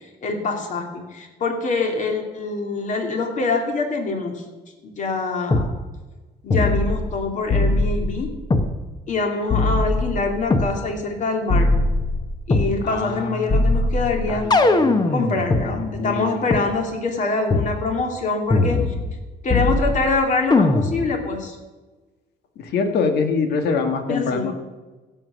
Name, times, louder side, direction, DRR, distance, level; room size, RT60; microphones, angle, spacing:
voice 1, 0.2-4.4 5.0-5.7 6.4-8.3 9.1-11.7 12.5-14.4 15.1-18.8 19.4-21.6 24.1-24.5, left 3 dB, 45° left, 3 dB, 2.8 m, -24 dB
sound 1, 5.5-5.7 6.5-7.2 7.5-8.7 9.5-10.7 11.5-12.7 13.5-15.7 16.5-16.6 17.5-17.7 18.5-19.2 19.5-20.1 20.5-21.1, left 2 dB, 25° left, 1.1 m, -20 dB
voice 2, 12.8-13.7 14.3-15.2 15.6-16.3 22.6-24.5, left 4 dB, 75° left, 6 dB, 1.8 m, -25 dB
16.0 x 7.7 x 6.4 m, 1.2 s
cardioid pair, 125°, 17 cm